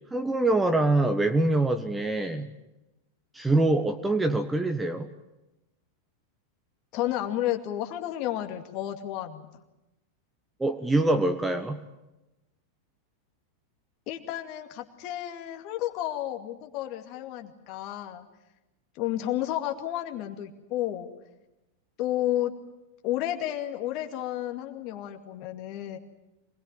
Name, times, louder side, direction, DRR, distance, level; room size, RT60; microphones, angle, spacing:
voice 1, 0.1-2.5 3.3-5.1 10.6-11.8, right 2 dB, 10° right, 7 dB, 1.4 m, -24 dB
voice 2, 6.9-9.6 14.1-18.3 19.0-21.1 22.0-22.6 23.0-26.0, left 13 dB, 40° left, 4 dB, 2.3 m, -31 dB
25.0 x 20.5 x 9.0 m, 0.96 s
figure-of-eight pair, 90°, 0 cm